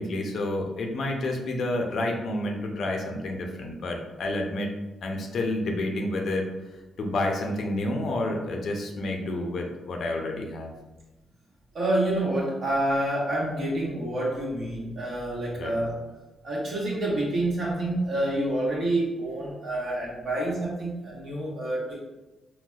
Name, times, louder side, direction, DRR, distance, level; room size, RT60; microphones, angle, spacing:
voice 1, 0.0-4.7 5.0-6.5 7.0-10.7 15.6-15.8 20.4-20.5, left 1 dB, 65° left, 2 dB, 0.5 m, -29 dB
voice 2, 11.7-15.9 16.4-22.0, right 1 dB, 60° right, -5 dB, 1.2 m, -28 dB
3.9 x 2.1 x 2.3 m, 1.1 s
supercardioid pair, 60°, 0 cm